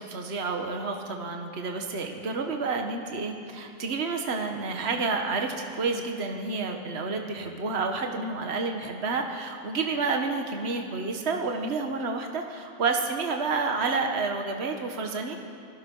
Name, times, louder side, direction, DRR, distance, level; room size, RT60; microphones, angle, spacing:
voice 1, 0.0-15.4, right 4 dB, 40° right, 3 dB, 1.8 m, -29 dB
27.5 x 19.5 x 5.6 m, 2.3 s
omnidirectional pair, 1.7 m